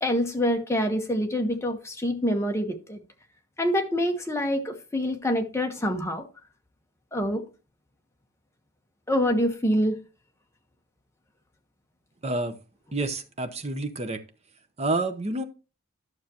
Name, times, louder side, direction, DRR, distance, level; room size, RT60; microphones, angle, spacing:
voice 1, 0.0-3.0 3.6-6.3 7.1-7.4 9.1-10.0, equal, 15° left, 1.0 m, -26 dB
voice 2, 12.2-12.6 12.9-14.2 14.8-15.4, right 2 dB, 30° right, 0.8 m, -28 dB
11.5 x 6.6 x 2.9 m
head